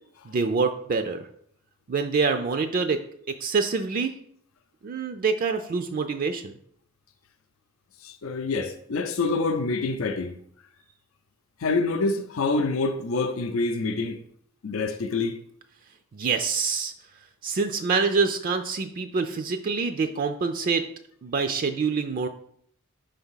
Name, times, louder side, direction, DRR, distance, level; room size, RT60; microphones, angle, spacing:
voice 1, 0.3-1.3 1.9-3.0 3.3-4.1 4.8-6.5 16.1-16.9 17.4-20.8 21.2-22.3, right 4 dB, 45° right, 0.4 m, -26 dB
voice 2, 8.0-10.3 11.6-14.2 14.6-15.4, left 3 dB, 85° left, 0.5 m, -26 dB
5.4 x 3.4 x 5.6 m
head